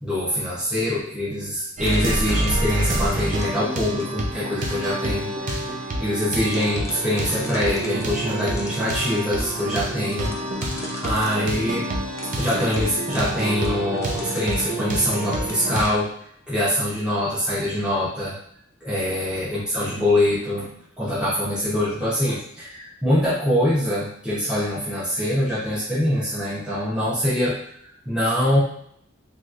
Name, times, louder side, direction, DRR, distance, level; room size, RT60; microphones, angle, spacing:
voice 1, 0.0-10.3 10.6-11.9 12.4-16.1 16.5-18.4 18.8-28.6, left 1 dB, 5° right, -9 dB, 0.8 m, -24 dB
sound 1, 1.8-15.8, right 1 dB, 40° right, 0.5 m, -27 dB
sound 2, 1.9-4.2 5.0-5.7 6.1-6.2 6.4-8.1 8.4-9.6 10.1-11.4 12.1-15.2 15.5-16.0, left 2 dB, 15° left, 0.4 m, -40 dB
3.0 x 2.9 x 2.4 m, 0.67 s
head